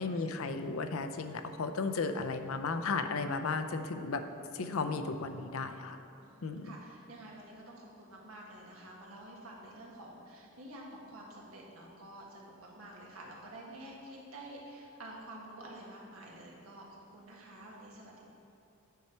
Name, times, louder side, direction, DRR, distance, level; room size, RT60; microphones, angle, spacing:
voice 1, 0.0-4.2 4.5-6.0 6.4-6.7, left 4 dB, 80° left, 7 dB, 0.5 m, -34 dB
voice 2, 6.2-18.2, right 1 dB, 85° right, -3 dB, 1.6 m, -49 dB
9.3 x 5.6 x 4.4 m, 2.9 s
head